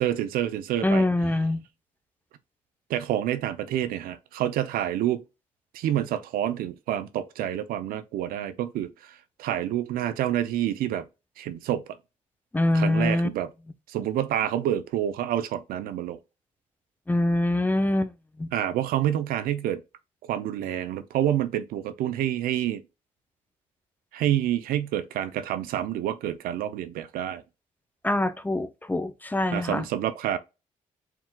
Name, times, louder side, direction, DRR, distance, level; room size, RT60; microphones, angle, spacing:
voice 1, 0.0-1.1 2.9-5.2 5.7-11.1 11.4-11.8 12.7-13.5 13.9-16.2 18.5-19.8 20.3-22.8 24.1-27.4 29.5-30.4, right 11 dB, 85° right, 0.5 m, -28 dB
voice 2, 0.8-1.6 12.5-13.3 17.1-18.1 18.4-18.5 28.0-29.9, left 1 dB, 10° left, 0.6 m, -24 dB
4.6 x 3.6 x 2.2 m
cardioid pair, 80°, 15 cm